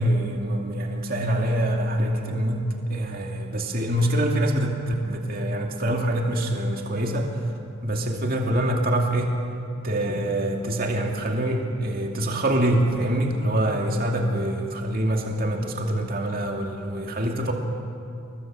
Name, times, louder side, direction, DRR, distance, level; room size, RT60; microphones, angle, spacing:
voice 1, 0.0-7.3 7.8-9.4 9.8-17.5, right 1 dB, 40° right, 1 dB, 2.5 m, -25 dB
29.0 x 23.0 x 7.6 m, 2.6 s
head